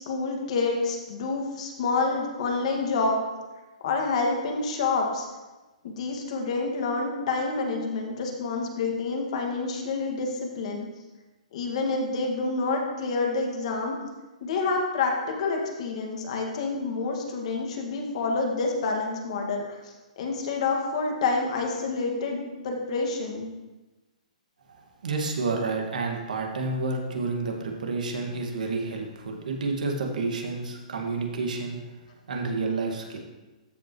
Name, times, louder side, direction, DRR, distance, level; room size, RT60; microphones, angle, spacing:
voice 1, 0.0-3.2 3.8-5.3 5.8-10.8 11.5-13.9 14.4-23.5, left 3 dB, 55° left, 1 dB, 1.8 m, -28 dB
voice 2, 25.0-31.8 32.3-33.2, right 3 dB, 85° right, 2 dB, 1.7 m, -29 dB
14.0 x 5.3 x 3.0 m, 1.1 s
hypercardioid pair, 155°, 4 cm